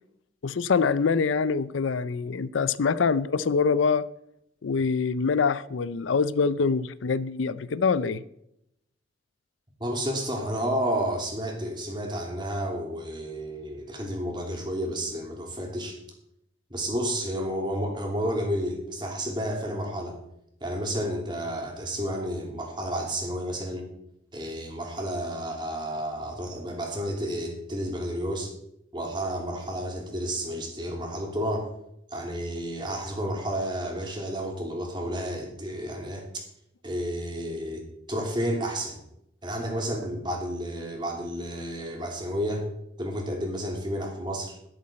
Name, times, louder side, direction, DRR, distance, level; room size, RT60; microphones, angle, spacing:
voice 1, 0.4-4.1 4.6-8.2, left 5 dB, 85° left, 0.5 m, -25 dB
voice 2, 9.8-16.0 16.7-20.2 20.6-23.9 24.3-28.5 28.9-31.7 32.1-36.3 36.8-39.0 39.4-42.7 43.0-44.6, equal, 25° right, 2.8 m, -31 dB
11.5 x 11.5 x 4.3 m
head